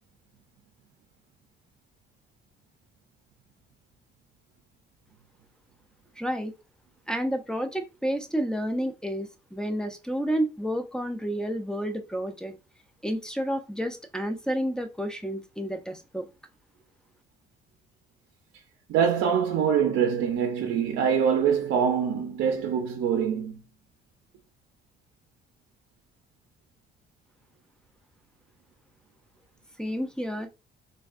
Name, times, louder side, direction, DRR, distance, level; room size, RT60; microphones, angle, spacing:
voice 1, 6.2-6.5 7.1-12.5 13.0-16.3 29.8-30.5, equal, 5° left, 0.5 m, -30 dB
voice 2, 18.9-23.6, right 7 dB, 90° right, 0.5 m, -24 dB
3.3 x 2.2 x 2.4 m
cardioid pair, 90°, 20 cm